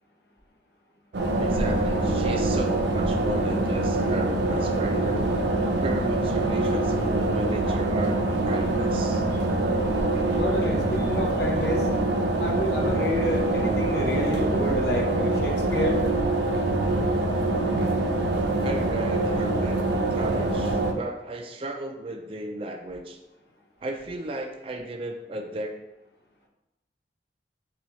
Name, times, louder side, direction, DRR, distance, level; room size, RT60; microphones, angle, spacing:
sound 1, 1.1-20.9, right 2 dB, 75° right, 0.6 m, -25 dB
sound 2, 1.2-15.6, right 1 dB, 20° left, 1.0 m, -39 dB
voice 1, 1.4-5.3 5.8-9.3 18.6-23.2 23.8-25.8, right 2 dB, 30° right, 3 dB, 0.4 m, -35 dB
voice 2, 10.4-11.9 12.4-16.0, left 1 dB, 65° left, 1 dB, 0.8 m, -29 dB
6.8 x 2.3 x 3.1 m, 0.93 s
head